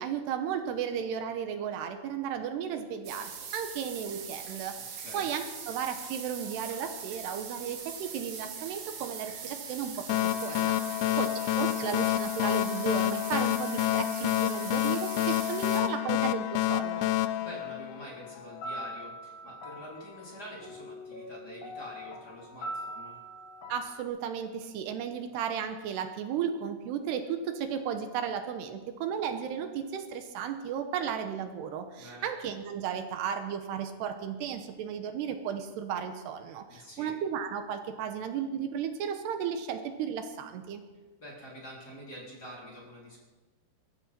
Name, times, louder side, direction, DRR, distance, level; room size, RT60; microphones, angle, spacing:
voice 1, 0.0-17.1 23.7-40.8, right 8 dB, 80° right, 7 dB, 3.0 m, -34 dB
sound 1, 3.0-15.8, right 6 dB, 55° right, 3.0 m, -42 dB
voice 2, 5.0-5.3 11.0-11.4 17.4-23.2 32.0-32.3 36.7-37.1 41.2-43.2, equal, 25° left, -3 dB, 3.7 m, -46 dB
sound 2, 10.1-18.4, left 15 dB, 90° left, 2.9 m, -28 dB
sound 3, 18.3-24.0, equal, 60° left, 3.6 m, -42 dB
22.5 x 14.0 x 4.4 m, 1.2 s
omnidirectional pair, 4.9 m